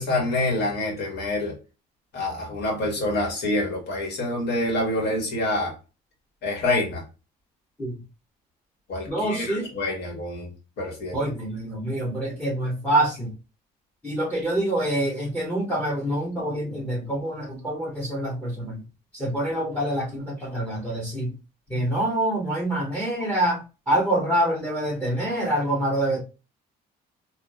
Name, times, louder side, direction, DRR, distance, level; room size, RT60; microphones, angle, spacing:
voice 1, 0.0-1.5 2.1-5.8 6.4-7.0 8.9-10.5 10.8-11.2 21.7-21.8, left 2 dB, 75° left, 1.7 m, -27 dB
voice 2, 9.1-9.7 11.1-13.3 14.0-18.8 19.1-21.3 21.7-26.2, right 1 dB, 10° left, 0.8 m, -26 dB
3.6 x 2.6 x 2.3 m
cardioid pair, 110°, 17 cm